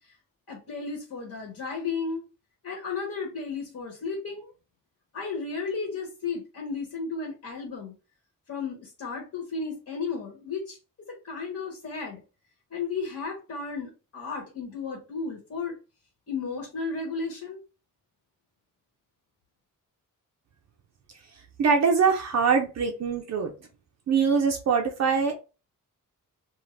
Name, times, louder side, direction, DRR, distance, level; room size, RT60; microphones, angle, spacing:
voice 1, 0.5-2.2 2.6-4.5 5.1-7.9 8.5-10.8 11.1-12.2 12.7-15.8 16.3-17.6, left 4 dB, 50° left, -2 dB, 1.1 m, -34 dB
voice 2, 21.6-23.5 24.1-25.4, right 5 dB, 55° right, 3 dB, 0.4 m, -23 dB
2.6 x 2.4 x 3.1 m, 0.31 s
wide cardioid pair, 175°, 33 cm